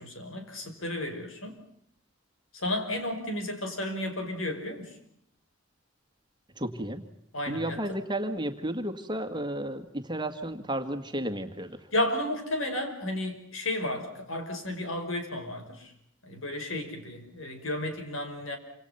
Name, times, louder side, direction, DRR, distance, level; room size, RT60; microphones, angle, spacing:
voice 1, 0.0-1.6 2.5-5.0 7.3-7.8 11.9-15.9 16.2-18.6, left 1 dB, 75° left, 6 dB, 5.5 m, -33 dB
voice 2, 6.6-7.0 7.5-11.9, right 1 dB, 20° right, 7 dB, 2.0 m, -33 dB
28.0 x 27.0 x 5.8 m, 0.72 s
head